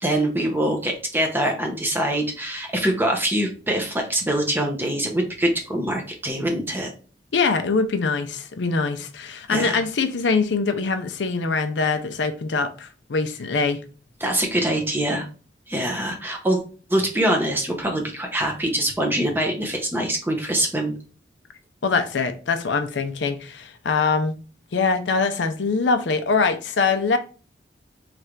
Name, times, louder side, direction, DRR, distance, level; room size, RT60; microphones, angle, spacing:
voice 1, 0.0-6.9 9.5-9.8 14.2-15.3 15.7-16.6 16.9-21.0, right 1 dB, 10° right, 0.8 m, -24 dB
voice 2, 7.3-13.8 21.8-24.3 24.7-27.2, left 4 dB, 75° left, 0.5 m, -23 dB
3.2 x 2.5 x 4.4 m
head